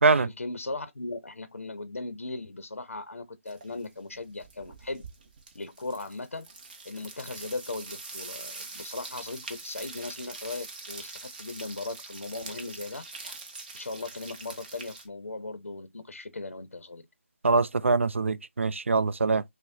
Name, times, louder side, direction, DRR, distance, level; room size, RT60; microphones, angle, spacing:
voice 1, 0.2-5.1 5.5-6.5 6.8-13.3 13.7-17.0, left 2 dB, 85° left, 0.6 m, -38 dB
sound 1, 3.5-3.9 4.1-15.1, right 3 dB, 40° right, 0.9 m, -44 dB
voice 2, 17.4-19.4, right 3 dB, 65° right, 0.4 m, -23 dB
5.7 x 2.0 x 2.6 m
figure-of-eight pair, 160°, 7 cm